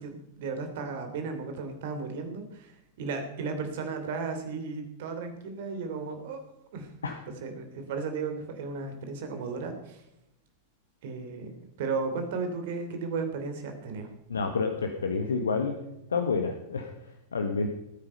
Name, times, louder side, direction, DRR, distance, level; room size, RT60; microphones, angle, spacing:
voice 1, 0.0-6.4 6.7-6.9 7.4-10.0 11.0-11.5 11.8-14.1, right 4 dB, 55° right, 6 dB, 3.3 m, -34 dB
voice 2, 14.3-15.8 16.1-17.7, left 4 dB, 70° left, 5 dB, 1.4 m, -29 dB
19.5 x 9.2 x 5.5 m, 0.86 s
figure-of-eight pair, 90°, 0 cm